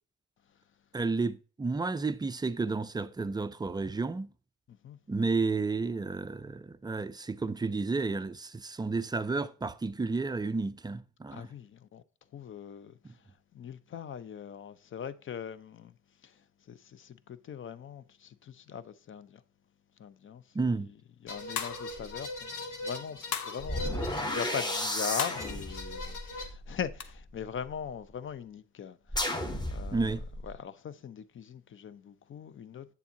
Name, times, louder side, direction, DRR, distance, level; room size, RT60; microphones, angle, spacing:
voice 1, 0.9-4.3 5.1-11.5 13.0-13.1 20.5-20.9 29.9-30.2, right 3 dB, 15° right, 0.3 m, -31 dB
voice 2, 11.3-12.0 12.3-13.2 13.5-15.9 16.2-16.4 16.7-19.4 20.0-20.9 21.2-30.1 30.4-32.9, left 7 dB, 40° left, 0.5 m, -41 dB
sound 1, 21.3-26.5, left 2 dB, 90° left, 1.5 m, -41 dB
sound 2, 21.6-22.0 23.3-23.7 25.2-25.5 27.0-27.1, left 7 dB, 70° left, 0.8 m, -35 dB
sound 3, 21.9-22.1 23.6-27.7 29.1-30.5, left 1 dB, 15° left, 1.0 m, -34 dB
8.2 x 7.0 x 2.8 m
cardioid pair, 90°, 30 cm